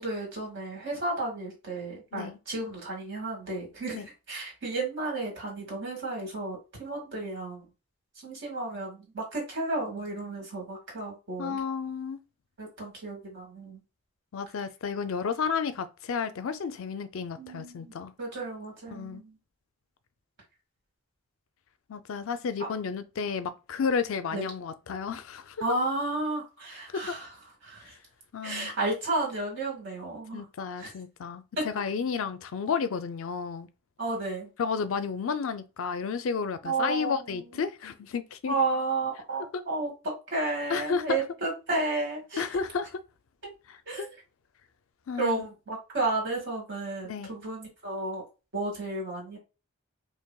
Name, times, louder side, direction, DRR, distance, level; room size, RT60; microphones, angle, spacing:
voice 1, 0.0-7.6 8.2-11.6 12.6-13.8 17.4-19.3 24.3-24.5 25.6-27.3 27.6-27.9 28.4-30.4 30.8-30.9 31.6-31.7 34.0-34.5 36.6-37.4 38.5-39.9 40.3-42.4 43.9-44.1 45.2-48.2 48.5-49.4, right 2 dB, 55° right, 1.9 m, -32 dB
voice 2, 11.4-12.2 14.3-18.1 18.9-19.2 21.9-25.7 26.9-27.1 28.3-28.7 30.3-33.7 34.6-38.5 39.5-39.6 40.7-41.2 42.4-42.9 43.7-44.1 45.1-45.5 47.0-47.3, left 6 dB, 65° left, 0.4 m, -32 dB
4.7 x 2.9 x 2.2 m
head